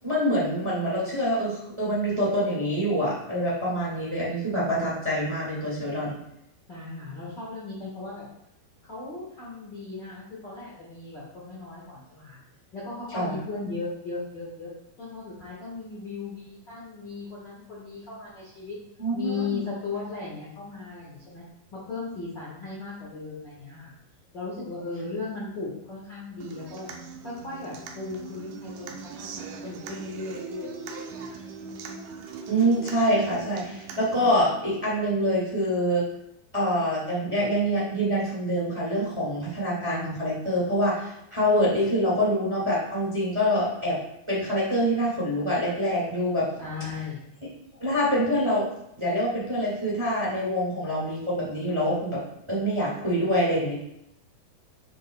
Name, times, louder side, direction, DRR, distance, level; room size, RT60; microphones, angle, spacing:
voice 1, 0.0-6.2 13.1-13.4 19.0-19.6 32.5-36.0 36.5-44.0 44.3-46.5 47.8-48.7 49.0-52.2 52.5-53.7, equal, 40° right, -6 dB, 0.4 m, -25 dB
voice 2, 6.7-8.2 8.8-12.4 12.7-14.7 15.0-18.8 19.1-21.4 21.7-23.9 24.3-31.4 46.6-47.2, left 4 dB, 75° left, -7 dB, 1.0 m, -37 dB
Human voice / Acoustic guitar, 26.4-34.4, right 5 dB, 90° right, 1.8 m, -41 dB
7.4 x 7.0 x 2.3 m, 0.78 s
omnidirectional pair, 4.5 m